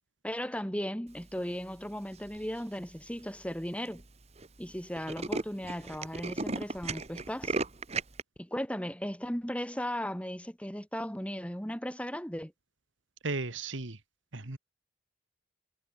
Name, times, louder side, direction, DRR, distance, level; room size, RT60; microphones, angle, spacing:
voice 1, 0.2-4.0 4.6-7.6 8.4-12.5, equal, 5° left, 3.7 m, -36 dB
Tools, 2.2-2.6 3.2-3.3 3.5-3.6 3.9-4.1 4.4-4.5 4.7-8.2, right 3 dB, 35° right, 1.5 m, -35 dB
voice 2, 13.2-14.0 14.3-14.6, right 3 dB, 70° right, 1.9 m, -35 dB
head